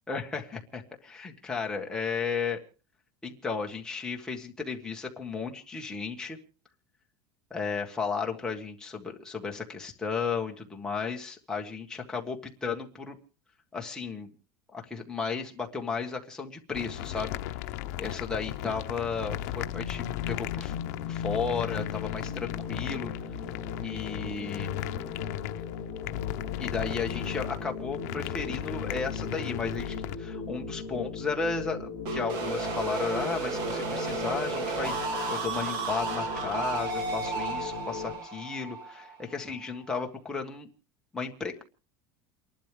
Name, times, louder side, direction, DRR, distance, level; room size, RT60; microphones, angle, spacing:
voice 1, 0.1-2.6 3.2-6.4 7.5-13.2 13.7-14.3 14.7-17.4 18.0-20.7 21.1-23.1 23.8-24.7 26.6-40.7 41.1-41.6, left 5 dB, 5° left, 1 dB, 1.5 m, -34 dB
sound 1, 16.7-30.1, left 13 dB, 65° left, 0.8 m, -36 dB
sound 2, 18.5-38.1, left 5 dB, 40° left, 3.3 m, -38 dB
sound 3, 32.0-39.8, right 4 dB, 50° right, 2.3 m, -33 dB
29.5 x 11.5 x 3.4 m, 0.37 s
cardioid pair, 170°, 9 cm